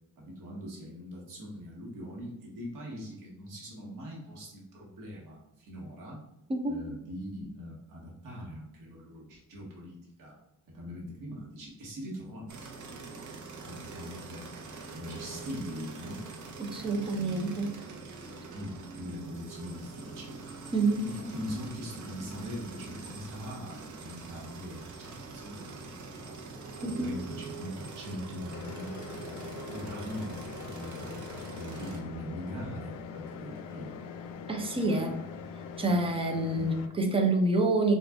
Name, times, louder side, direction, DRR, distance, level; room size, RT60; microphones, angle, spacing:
voice 1, 0.2-6.2 6.7-10.4 10.7-14.5 14.9-16.2 16.8-17.7 18.5-20.4 21.0-26.4 26.8-29.0 29.7-31.2 31.5-34.0 36.5-36.7, equal, 80° right, -4 dB, 1.2 m, -42 dB
voice 2, 6.5-6.8 16.6-17.7 20.7-21.1 26.8-27.1 34.5-35.2 35.8-38.0, right 2 dB, 15° right, 4 dB, 0.5 m, -27 dB
sound 1, 12.5-32.0, right 4 dB, 65° right, 0.8 m, -44 dB
sound 2, 28.5-36.9, left 6 dB, 85° left, 0.5 m, -42 dB
3.8 x 2.4 x 3.4 m, 0.88 s
cardioid pair, 145°, 33 cm